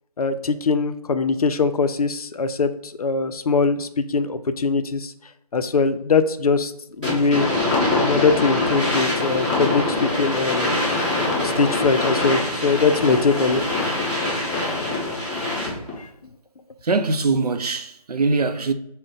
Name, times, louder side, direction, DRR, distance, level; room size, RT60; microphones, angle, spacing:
voice 1, 0.2-5.1 5.5-6.7 7.0-7.5 8.0-10.8 11.4-13.6, left 4 dB, 65° left, 0.4 m, -21 dB
sound 1, 7.0-15.9, left 2 dB, 15° right, 1.3 m, -23 dB
voice 2, 16.8-18.7, right 3 dB, 70° right, 0.5 m, -22 dB
5.0 x 2.1 x 3.8 m
figure-of-eight pair, 170°, 20 cm